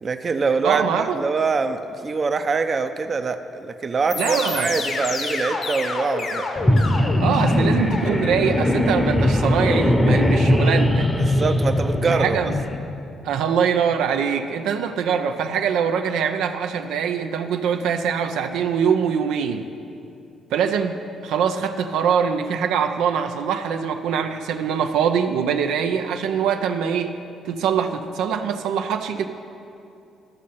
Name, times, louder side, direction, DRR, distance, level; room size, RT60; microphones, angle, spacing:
voice 1, 0.0-6.5 11.2-12.4, right 4 dB, 40° right, 8 dB, 0.6 m, -24 dB
voice 2, 0.6-1.2 4.1-4.8 7.2-11.1 12.0-12.6 13.2-19.7 20.5-27.2 27.5-29.2, right 7 dB, 90° right, 6 dB, 0.5 m, -23 dB
sound 1, 4.1-12.9, left 3 dB, 60° left, 1.1 m, -31 dB
sound 2, 6.6-12.8, left 1 dB, 10° left, 0.8 m, -20 dB
13.0 x 6.4 x 5.6 m, 2.6 s
cardioid pair, 90°, 0 cm